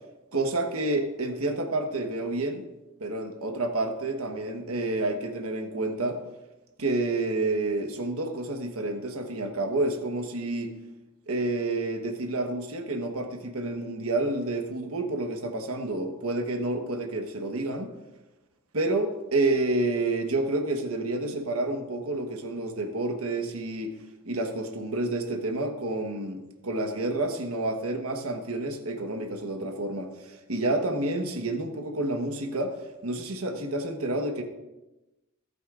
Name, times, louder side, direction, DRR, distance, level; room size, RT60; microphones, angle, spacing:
voice 1, 0.3-2.6 3.0-6.2 6.8-10.7 11.3-17.9 18.7-23.9 24.2-32.8 33.0-34.4, right 2 dB, 80° right, 4 dB, 1.3 m, -29 dB
17.5 x 9.2 x 2.5 m, 1.0 s
head